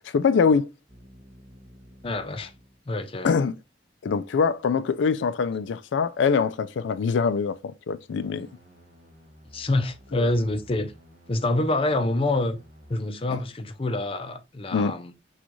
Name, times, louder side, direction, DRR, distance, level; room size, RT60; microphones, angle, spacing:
voice 1, 0.1-0.7 3.2-3.5 4.0-8.5 10.1-10.3 13.3-13.4 14.7-14.9, left 5 dB, 80° left, 0.4 m, -23 dB
sound 1, 0.9-2.8 8.1-13.0, equal, 40° right, 0.9 m, -52 dB
voice 2, 2.0-2.5 2.9-3.3 9.5-10.9 11.3-12.6 12.9-15.1, left 2 dB, 30° left, 0.5 m, -26 dB
6.1 x 2.4 x 3.0 m
head